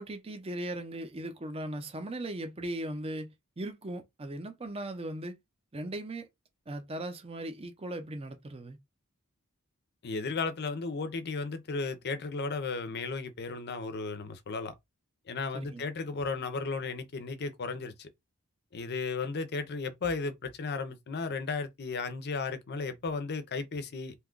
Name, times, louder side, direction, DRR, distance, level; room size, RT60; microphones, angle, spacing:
voice 1, 0.0-5.4 5.7-6.3 6.7-8.8 15.5-15.8, right 1 dB, 25° right, 0.6 m, -38 dB
voice 2, 10.0-14.7 15.3-18.1 18.7-24.1, left 4 dB, 50° left, 0.6 m, -34 dB
2.8 x 2.3 x 3.7 m
head